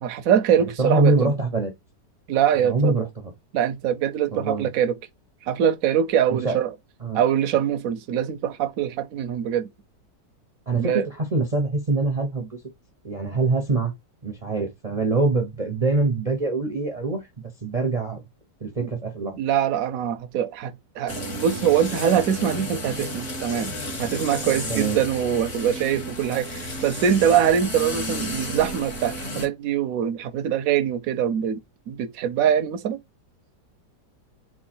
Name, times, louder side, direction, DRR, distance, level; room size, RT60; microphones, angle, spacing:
voice 1, 0.0-1.3 2.3-2.9 3.5-5.0 5.4-6.7 7.1-9.7 10.7-11.1 19.4-23.7 24.0-33.0, right 9 dB, 65° right, 1.0 m, -23 dB
voice 2, 0.6-1.7 2.6-3.3 4.3-4.7 6.3-6.6 7.0-7.2 10.7-12.6 13.0-13.9 14.2-17.2 17.6-18.2 18.6-19.4 24.7-25.0, right 3 dB, 35° right, 0.6 m, -24 dB
sound 1, 21.1-29.5, equal, 50° left, 2.4 m, -32 dB
4.7 x 2.4 x 4.3 m
omnidirectional pair, 1.9 m